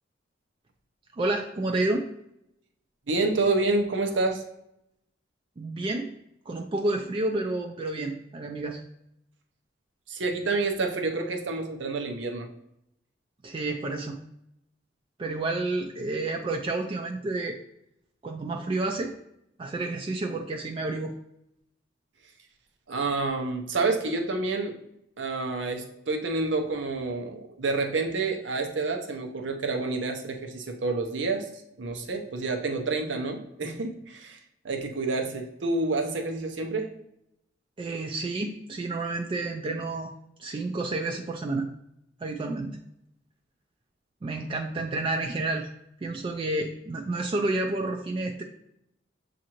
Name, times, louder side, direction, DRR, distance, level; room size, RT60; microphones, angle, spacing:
voice 1, 1.2-2.1 5.6-6.1 6.5-8.8 13.4-14.2 15.2-17.6 18.2-19.1 19.6-21.1 37.8-40.1 40.4-41.7 42.2-42.8 44.2-45.7 46.0-48.4, right 2 dB, 30° right, 3 dB, 0.3 m, -30 dB
voice 2, 3.1-4.4 10.1-12.5 22.9-24.7 25.2-31.5 31.8-34.4 34.6-36.9, right 3 dB, 85° right, 4 dB, 0.7 m, -28 dB
7.2 x 2.5 x 2.9 m, 0.80 s
head